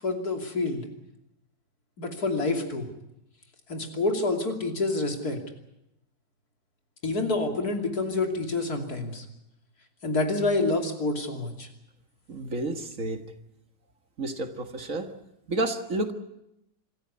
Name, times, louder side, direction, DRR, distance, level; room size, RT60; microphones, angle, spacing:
voice 1, 0.0-0.8 2.0-2.9 3.7-5.4 7.0-9.2 10.0-11.7, left 2 dB, 65° left, 3 dB, 3.4 m, -27 dB
voice 2, 12.3-13.2 14.2-15.1 15.5-16.1, right 2 dB, 55° right, 6 dB, 2.1 m, -30 dB
26.5 x 14.0 x 9.8 m, 0.85 s
omnidirectional pair, 1.7 m